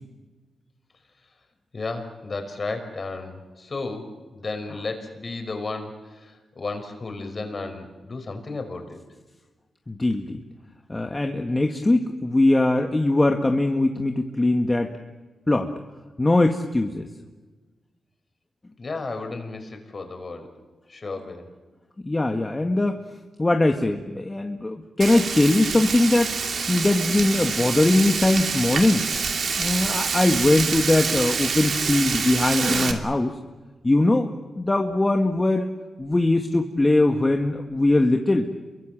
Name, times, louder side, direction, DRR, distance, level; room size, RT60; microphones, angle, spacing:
voice 1, 1.7-9.0 18.8-20.5 20.9-21.5, left 3 dB, 45° left, 6 dB, 5.5 m, -33 dB
voice 2, 9.9-10.4 10.9-14.9 15.5-15.7 16.2-17.1 22.0-23.0 23.4-26.3 26.7-29.1 29.6-33.4 33.8-34.3 34.5-35.7 36.0-38.5, left 2 dB, 25° left, 4 dB, 2.0 m, -21 dB
Frying (food), 25.0-32.9, right 5 dB, 65° right, 2.8 m, -26 dB
28.0 x 23.5 x 7.7 m, 1.3 s
cardioid pair, 65°, 0 cm